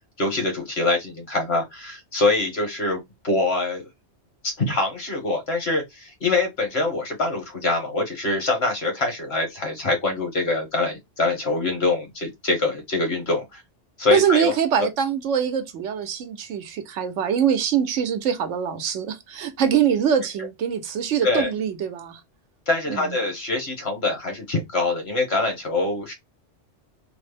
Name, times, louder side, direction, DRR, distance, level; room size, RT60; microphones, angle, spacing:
voice 1, 0.2-3.8 4.4-13.6 14.0-14.5 14.8-14.9 21.2-21.5 22.7-26.1, left 3 dB, 60° left, 1.4 m, -24 dB
voice 2, 14.1-22.2 22.9-23.2, right 8 dB, 85° right, 1.0 m, -23 dB
3.1 x 2.0 x 3.3 m
omnidirectional pair, 1.2 m